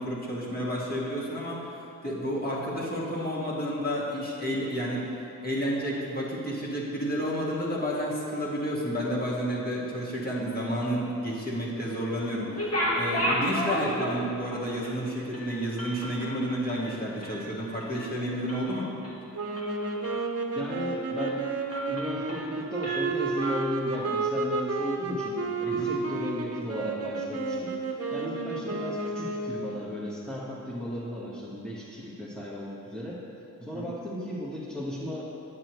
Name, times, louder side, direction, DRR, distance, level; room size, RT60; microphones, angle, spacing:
voice 1, 0.0-1.6 2.0-5.1 5.4-18.9 25.7-25.9 33.8-33.9, equal, 25° left, -6 dB, 1.8 m, -31 dB
sound 1, 12.4-14.5 14.8-15.0 15.3-17.5 17.8-18.1 18.5-19.1 19.6-20.3 20.7-20.8 21.2-21.4 21.7-22.5 22.8-24.0, equal, 45° left, 1.6 m, -32 dB
sound 2, 19.3-29.7, right 3 dB, 45° right, 0.9 m, -31 dB
voice 2, 20.5-21.4 21.8-27.8 28.1-33.2 33.6-35.2, equal, ahead, -7 dB, 1.3 m, -35 dB
8.6 x 8.1 x 3.1 m, 2.6 s
cardioid pair, 80°, 34 cm